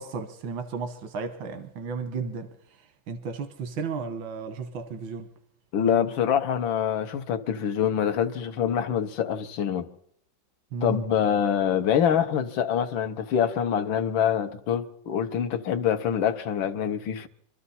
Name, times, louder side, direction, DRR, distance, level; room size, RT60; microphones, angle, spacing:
voice 1, 0.0-2.5 3.1-5.3 10.7-11.0, right 5 dB, 90° right, 1.8 m, -33 dB
voice 2, 5.7-9.9 10.8-17.3, left 8 dB, 90° left, 1.8 m, -25 dB
25.0 x 13.0 x 4.2 m
omnidirectional pair, 2.1 m